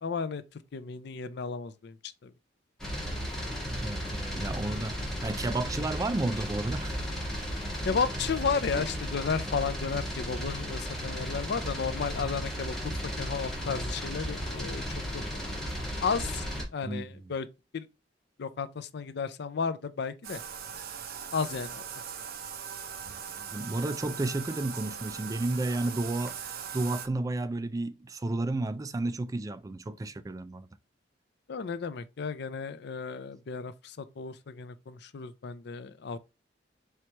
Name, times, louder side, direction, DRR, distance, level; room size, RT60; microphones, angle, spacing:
voice 1, 0.0-0.4 0.7-2.0 2.2-2.3 7.8-14.8 15.1-15.5 16.0-16.4 16.7-17.5 17.7-17.9 18.4-20.4 21.3-21.8 31.5-36.2, left 5 dB, 65° left, 0.4 m, -33 dB
sound 1, 2.8-16.6, equal, 5° left, 1.6 m, -35 dB
voice 2, 3.8-7.0 7.7-7.8 16.8-17.3 23.1-26.4 26.7-30.7, right 2 dB, 20° right, 0.3 m, -32 dB
Bathtub (filling or washing), 20.2-27.1, right 7 dB, 55° right, 0.6 m, -40 dB
4.5 x 3.2 x 2.9 m
head